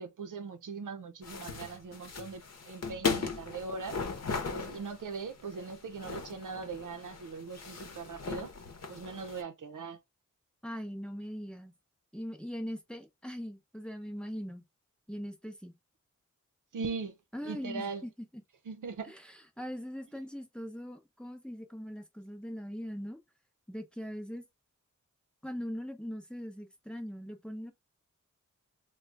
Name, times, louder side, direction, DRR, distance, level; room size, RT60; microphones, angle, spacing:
voice 1, 0.0-4.0 4.5-8.6 8.9-10.0 16.7-18.1 18.6-19.1, right 4 dB, 85° right, 0.7 m, -40 dB
sound 1, 1.2-9.4, left 5 dB, 55° left, 0.8 m, -38 dB
voice 2, 10.6-11.7 12.1-14.6 15.1-15.8 17.3-18.4 19.1-19.2 19.6-23.2 23.7-24.4 25.4-27.7, equal, 5° left, 0.7 m, -41 dB
3.7 x 2.3 x 3.2 m
wide cardioid pair, 105°, 30 cm